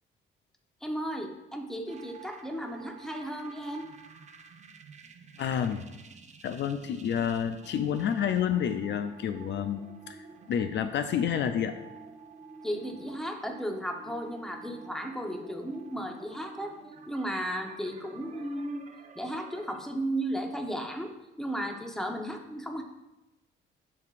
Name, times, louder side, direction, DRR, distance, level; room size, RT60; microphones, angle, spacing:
voice 1, 0.8-3.9 12.6-16.8 17.1-18.8 19.1-21.1 21.4-22.8, equal, ahead, 3 dB, 1.0 m, -34 dB
sound 1, 1.9-19.8, right 4 dB, 35° right, 0.7 m, -50 dB
voice 2, 5.4-5.9 6.4-11.7, left 8 dB, 65° left, 9 dB, 0.5 m, -29 dB
10.5 x 4.8 x 2.5 m, 1.0 s
cardioid pair, 90°, 20 cm